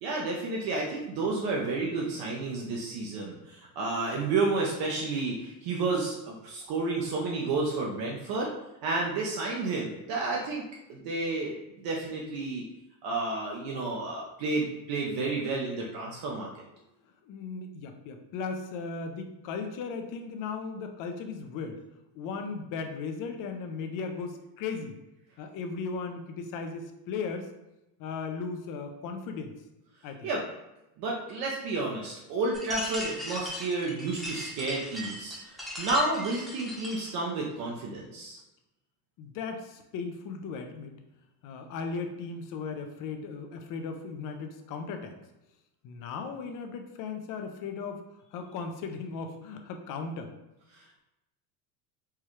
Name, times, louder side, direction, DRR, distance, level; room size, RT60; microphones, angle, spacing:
voice 1, 0.0-8.5 8.8-10.6 10.9-12.6 13.0-16.5 30.2-30.4 31.0-35.4 35.8-38.4 50.7-51.0, right 3 dB, 55° right, -2 dB, 0.7 m, -31 dB
voice 2, 17.2-21.8 22.1-25.0 25.4-27.5 28.0-29.5 30.0-30.3 39.2-40.9 41.4-45.2 45.8-48.0 48.3-50.3, left 5 dB, 45° left, 6 dB, 0.6 m, -37 dB
sound 1, 32.5-37.1, left 1 dB, ahead, 0.9 m, -38 dB
4.6 x 2.3 x 3.1 m, 0.93 s
supercardioid pair, 130°, 45 cm